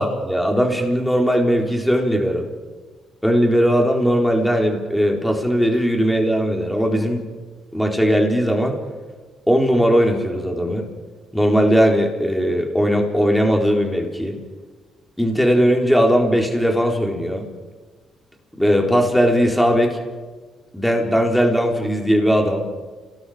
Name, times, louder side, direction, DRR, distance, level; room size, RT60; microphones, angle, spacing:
voice 1, 0.0-2.5 3.2-7.2 7.7-8.8 9.5-10.8 11.3-14.4 15.2-17.5 18.6-20.0 20.7-22.6, equal, 5° left, 1 dB, 4.1 m, -18 dB
30.0 x 19.5 x 5.1 m, 1.4 s
cardioid pair, 90°, 0 cm